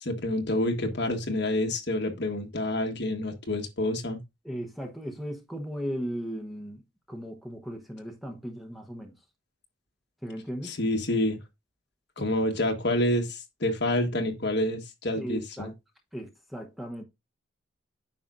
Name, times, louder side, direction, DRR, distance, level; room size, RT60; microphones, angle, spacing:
voice 1, 0.0-4.2 10.6-11.4 12.2-15.7, left 1 dB, 55° left, 1.5 m, -28 dB
voice 2, 4.4-6.8 7.1-9.1 10.2-10.8 12.2-12.3 15.2-15.7 16.1-17.0, equal, ahead, 0.9 m, -37 dB
9.3 x 5.9 x 2.5 m
head